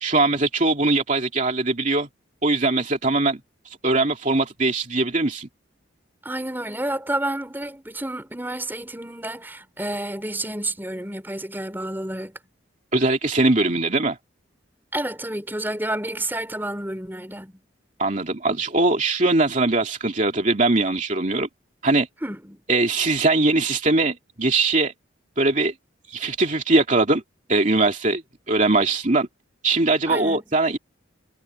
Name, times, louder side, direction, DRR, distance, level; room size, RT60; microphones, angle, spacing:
voice 1, 0.0-2.1 2.4-3.4 3.6-5.5 12.9-14.2 18.0-21.5 21.8-22.1 22.7-24.9 25.4-25.7 26.1-27.2 27.5-28.2 28.5-29.3 29.6-30.8, right 2 dB, 40° right, 2.7 m, -21 dB
voice 2, 6.2-12.3 14.9-17.5 22.2-22.6 30.1-30.4, right 1 dB, 10° right, 4.4 m, -30 dB
head